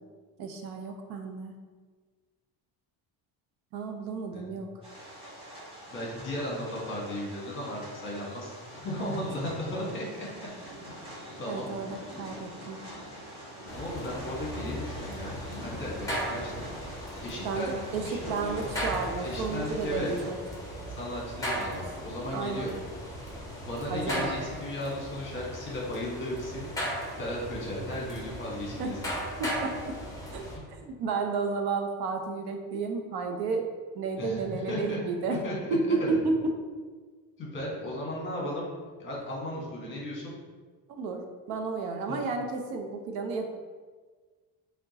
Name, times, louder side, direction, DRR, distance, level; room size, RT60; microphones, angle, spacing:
voice 1, 0.4-1.5 3.7-4.7 9.0-9.2 11.5-12.8 17.4-20.4 22.3-22.7 23.9-24.3 28.8-28.9 29.4-29.7 30.3-33.6 33.9-35.4 35.7-36.4 40.9-41.2 41.5-43.5, right 4 dB, 70° right, 4 dB, 0.7 m, -32 dB
sound 1, 4.8-20.3, equal, 15° right, 1.4 m, -45 dB
voice 2, 5.9-10.3 10.8-10.9 11.4-11.7 13.7-16.5 17.2-18.7 19.2-20.1 21.0-22.7 23.6-26.7 27.2-29.1 34.2-35.0 35.3-35.6 36.0-36.2 37.4-38.7 39.0-40.3 42.1-42.2, left 1 dB, 30° left, -3 dB, 1.2 m, -35 dB
sound 2, 13.7-30.6, equal, 10° left, 0.9 m, -37 dB
4.5 x 2.3 x 4.0 m, 1.4 s
cardioid pair, 155°, 39 cm